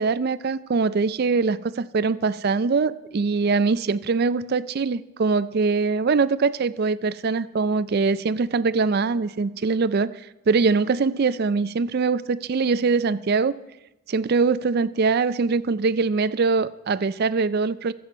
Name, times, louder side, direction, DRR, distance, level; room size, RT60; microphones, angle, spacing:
voice 1, 0.0-10.1 10.5-13.5 14.1-17.9, right 4 dB, 45° right, 16 dB, 0.4 m, -22 dB
21.5 x 7.8 x 4.5 m, 0.97 s
head